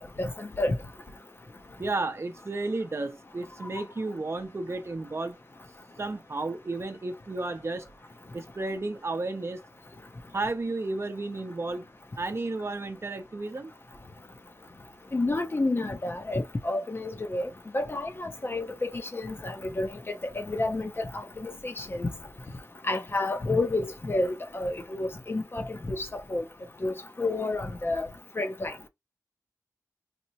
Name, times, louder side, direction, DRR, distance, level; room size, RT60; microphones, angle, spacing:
voice 1, 0.2-0.8 15.1-22.1 22.8-26.4 26.8-28.1 28.4-28.7, left 2 dB, 40° left, 0.6 m, -30 dB
voice 2, 1.8-5.4 6.0-7.9 8.3-9.6 10.3-11.9 12.2-13.7, right 2 dB, 45° right, 0.6 m, -32 dB
4.1 x 2.1 x 2.8 m
wide cardioid pair, 90°, 6 cm